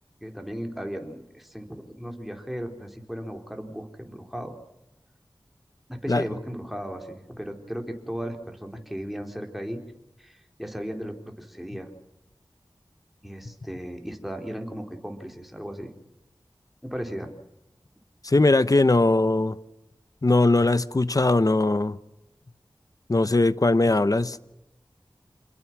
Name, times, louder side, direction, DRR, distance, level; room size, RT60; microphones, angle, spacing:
voice 1, 0.2-4.5 5.9-9.8 10.2-11.9 13.2-15.9 16.8-17.3, equal, ahead, 4.2 m, -36 dB
voice 2, 18.2-19.6 20.2-22.0 23.1-24.4, left 2 dB, 45° left, 1.0 m, -20 dB
28.5 x 21.5 x 6.2 m
wide cardioid pair, 45°, 8 cm